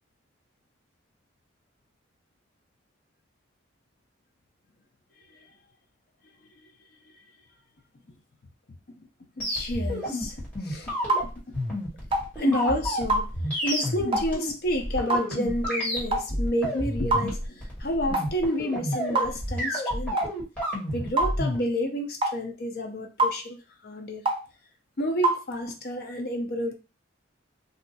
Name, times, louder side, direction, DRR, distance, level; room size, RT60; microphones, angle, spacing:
voice 1, 9.4-10.3 10.6-10.9 11.2-11.3 12.4-13.3 13.6-20.2 20.9-24.2 25.0-26.7, left 1 dB, 50° left, 0.6 m, -30 dB
sound 1, 9.4-21.6, equal, 10° left, 1.4 m, -30 dB
sound 2, 11.1-11.3 12.1-12.3 13.1-13.3 14.1-14.3 15.1-15.3 16.1-16.3 17.1-17.3 18.1-18.3 19.1-19.3 20.2-20.3 21.2-21.3 22.2-22.4 23.2-23.4 24.3-24.4 25.2-25.4, right 2 dB, 25° right, 0.4 m, -24 dB
2.7 x 2.3 x 3.9 m
head